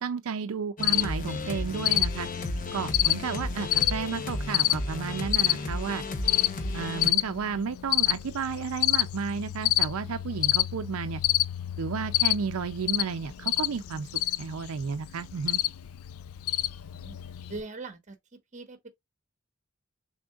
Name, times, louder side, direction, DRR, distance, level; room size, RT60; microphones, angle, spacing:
voice 1, 0.0-2.3 2.7-6.0 6.7-11.2 11.8-14.1 14.4-15.6, right 5 dB, 85° right, 0.5 m, -32 dB
Cricket, 0.8-17.6, left 15 dB, 90° left, 0.4 m, -29 dB
sound 1, 0.8-7.1, left 2 dB, 40° left, 0.8 m, -34 dB
voice 2, 16.7-17.2 17.5-18.9, right 3 dB, 35° right, 1.1 m, -42 dB
6.2 x 3.6 x 2.3 m
head